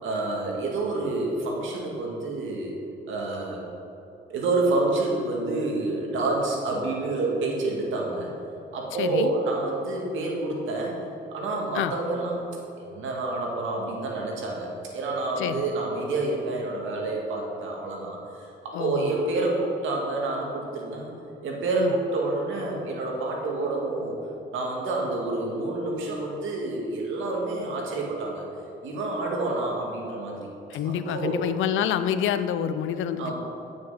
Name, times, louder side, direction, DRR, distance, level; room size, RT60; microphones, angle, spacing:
voice 1, 0.0-2.7 3.1-3.7 4.3-8.3 8.7-11.0 11.3-12.5 12.8-21.1 21.4-24.2 24.5-28.5 28.8-30.4 30.9-31.4 33.2-33.3, right 2 dB, 80° right, -1 dB, 2.1 m, -28 dB
voice 2, 9.0-9.3 11.7-11.9 15.4-15.7 18.7-19.1 21.7-21.9 30.7-33.3, left 9 dB, 80° left, 12 dB, 0.6 m, -27 dB
9.6 x 6.3 x 5.6 m, 2.9 s
cardioid pair, 90°, 20 cm